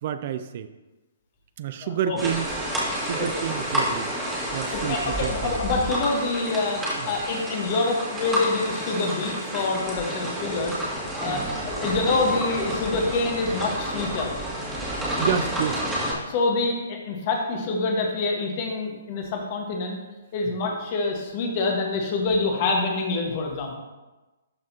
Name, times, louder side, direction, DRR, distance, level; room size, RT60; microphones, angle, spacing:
voice 1, 0.0-0.7 1.6-2.5 2.9-4.1 4.5-5.6 7.0-7.1 11.2-11.6 15.2-15.8, right 9 dB, 45° right, 10 dB, 0.3 m, -29 dB
voice 2, 1.8-2.2 3.2-3.4 4.7-10.7 11.2-14.4 16.3-20.0 20.3-23.8, left 3 dB, 40° left, 2 dB, 1.4 m, -26 dB
sound 1, 2.2-16.1, equal, 10° right, 1.9 m, -29 dB
12.0 x 4.2 x 2.9 m, 1.1 s
figure-of-eight pair, 125°, 0 cm